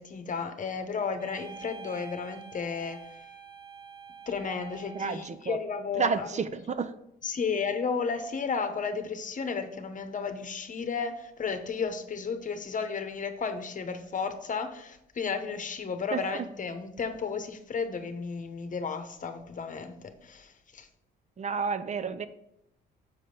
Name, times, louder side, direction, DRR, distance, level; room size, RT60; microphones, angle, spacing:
voice 1, 0.0-3.0 4.3-6.3 7.2-20.9, left 5 dB, 40° left, 8 dB, 1.1 m, -33 dB
sound 1, 1.2-5.4, right 5 dB, 55° right, 1.7 m, -47 dB
voice 2, 4.9-5.6 5.9-7.0 16.1-16.5 21.4-22.3, right 5 dB, 35° right, 12 dB, 0.7 m, -31 dB
6.9 x 4.9 x 5.4 m, 0.80 s
cardioid pair, 90°, 20 cm